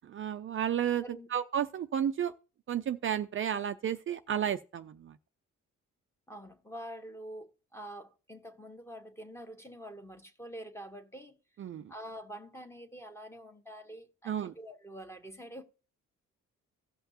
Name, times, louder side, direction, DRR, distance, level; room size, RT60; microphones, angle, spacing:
voice 1, 0.0-1.0 1.3-2.3 2.7-5.2 11.6-11.9 14.3-14.5, right 9 dB, 45° right, 0.5 m, -32 dB
voice 2, 6.3-11.4 11.9-15.6, equal, 10° left, 1.5 m, -46 dB
16.5 x 5.7 x 2.9 m
cardioid pair, 90°, 30 cm